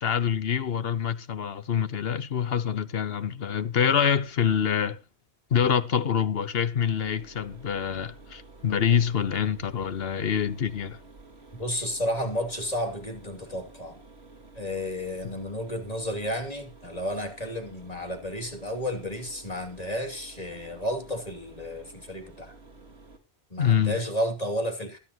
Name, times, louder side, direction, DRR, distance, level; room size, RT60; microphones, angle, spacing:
voice 1, 0.0-5.0 5.5-11.0 23.6-24.0, left 8 dB, 65° left, 1.2 m, -26 dB
Mechanisms, 7.0-23.2, right 3 dB, 75° right, 2.8 m, -51 dB
voice 2, 11.6-14.0 14.5-22.5 23.5-25.0, equal, 35° left, 2.9 m, -32 dB
20.5 x 10.0 x 2.9 m
omnidirectional pair, 1.1 m